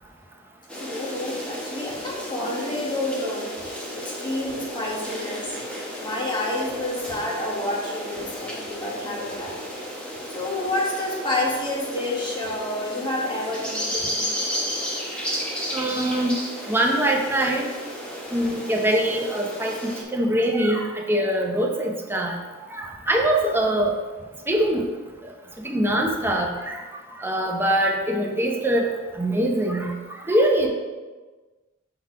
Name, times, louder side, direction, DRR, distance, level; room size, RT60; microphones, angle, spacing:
Wind in forest with creaking tree, 0.7-20.0, equal, 5° left, 1.1 m, -33 dB
voice 1, 0.8-5.6 6.0-9.6 10.3-14.3, left 1 dB, 25° left, -4 dB, 1.4 m, -29 dB
voice 2, 15.7-16.4 16.7-17.7 18.3-22.4 22.7-24.0 24.5-24.9 25.2-25.3 25.6-26.8 27.2-29.9 30.2-30.7, right 1 dB, 10° right, 0 dB, 0.7 m, -23 dB
5.9 x 3.9 x 4.8 m, 1.3 s
head